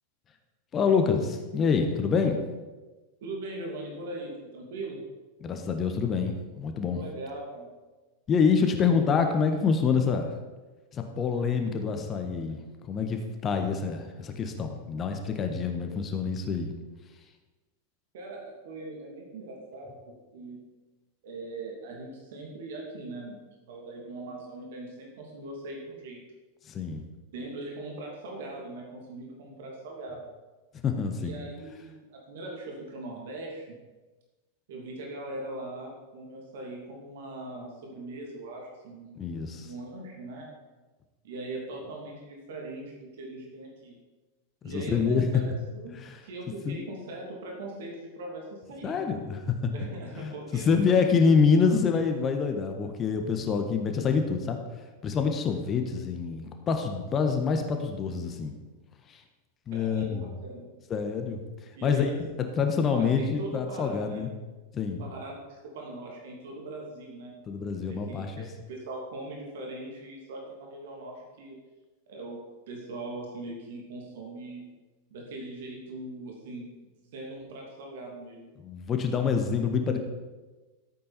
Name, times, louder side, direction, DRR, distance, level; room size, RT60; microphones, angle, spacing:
voice 1, 0.7-2.4 5.4-7.0 8.3-10.3 10.9-12.6 12.9-16.7 26.7-27.1 30.8-31.4 39.2-39.7 44.6-45.3 45.9-46.2 46.6-46.8 48.8-49.7 50.2-54.6 55.0-58.5 59.1-59.2 59.7-60.3 60.9-61.4 61.8-62.1 62.6-64.3 64.7-65.1 67.5-68.5 78.6-80.0, left 5 dB, 25° left, 5 dB, 1.4 m, -26 dB
voice 2, 3.2-5.0 6.9-7.7 18.1-20.6 21.2-23.4 23.7-26.2 27.3-30.3 31.2-33.8 34.7-39.2 39.6-40.5 41.2-44.0 44.6-46.0 46.2-49.0 49.7-51.0 59.7-60.7 61.8-62.3 62.9-64.2 65.0-67.3 67.9-71.6 72.1-72.4 72.7-74.6 75.1-76.9 77.1-78.5, right 2 dB, 55° right, -1 dB, 2.9 m, -40 dB
14.0 x 8.5 x 4.4 m, 1.2 s
figure-of-eight pair, 90°, 0 cm